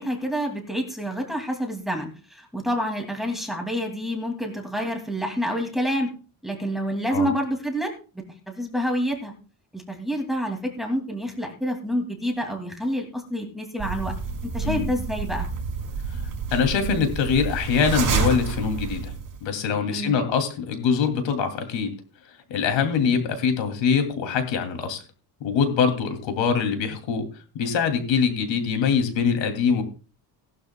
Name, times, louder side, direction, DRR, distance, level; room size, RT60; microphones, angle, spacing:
voice 1, 0.0-6.1 6.4-7.9 8.5-9.3 9.7-14.1 14.5-15.5 19.9-20.2, equal, ahead, 2 dB, 2.3 m, -28 dB
sound 1, 13.8-19.4, right 5 dB, 50° right, 5.3 m, -29 dB
voice 2, 16.5-19.1 19.4-21.9 22.5-25.0 25.4-27.3 27.5-29.8, left 6 dB, 80° left, 6 dB, 2.7 m, -23 dB
19.0 x 12.0 x 2.2 m, 0.35 s
cardioid pair, 165°, 44 cm